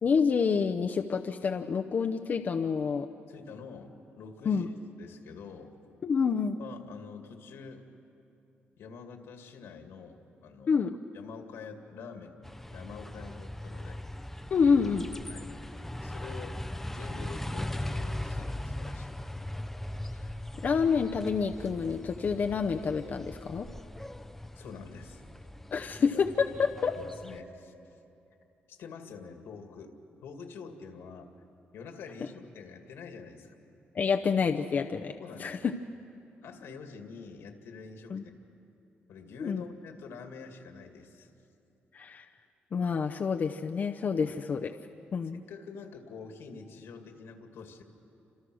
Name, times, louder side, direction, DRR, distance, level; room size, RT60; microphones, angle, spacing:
voice 1, 0.0-3.1 4.5-4.7 6.0-6.6 10.7-11.0 14.5-15.1 20.6-23.7 25.7-27.0 33.9-35.8 38.1-38.2 39.4-39.6 41.9-42.3 42.7-44.7 45.1-45.4, left 5 dB, 45° left, 4 dB, 0.7 m, -28 dB
voice 2, 3.3-5.7 6.6-7.8 8.8-10.8 11.1-12.4 12.7-14.0 15.3-15.5 16.0-16.6 16.9-19.2 24.5-25.2 26.0-26.2 27.0-27.7 28.7-30.0 30.2-31.3 31.7-33.5 35.2-35.6 36.4-38.2 39.1-41.3 44.2-44.4 45.3-47.8, left 5 dB, 80° left, 5 dB, 2.3 m, -46 dB
sound 1, 12.4-27.4, left 1 dB, 5° left, 0.7 m, -39 dB
29.0 x 26.5 x 6.3 m, 2.8 s
cardioid pair, 125°, 4 cm